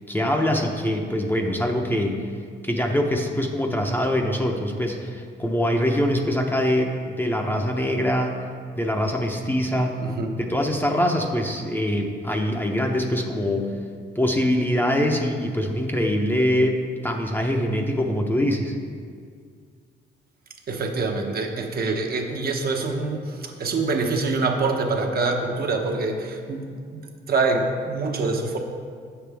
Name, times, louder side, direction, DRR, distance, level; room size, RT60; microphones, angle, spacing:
voice 1, 0.1-2.2 2.6-8.4 8.8-10.0 10.4-13.7 14.2-18.7, equal, 10° left, 2 dB, 0.7 m, -23 dB
voice 2, 10.0-10.4 20.7-26.7 27.3-28.6, right 3 dB, 50° right, 2 dB, 0.9 m, -25 dB
8.5 x 6.9 x 3.4 m, 2.1 s
cardioid pair, 90°, 20 cm